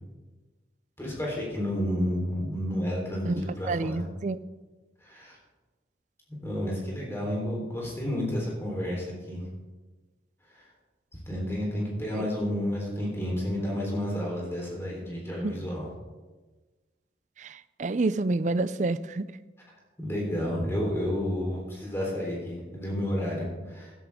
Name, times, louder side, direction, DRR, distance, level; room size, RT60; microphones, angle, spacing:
voice 1, 1.0-4.0 5.0-5.4 6.4-9.4 11.3-15.9 20.0-23.9, equal, 15° left, -3 dB, 3.7 m, -31 dB
voice 2, 3.2-4.4 12.1-12.2 15.4-15.6 17.4-19.3, right 3 dB, 40° right, 15 dB, 0.4 m, -29 dB
15.5 x 11.5 x 3.6 m, 1.3 s
head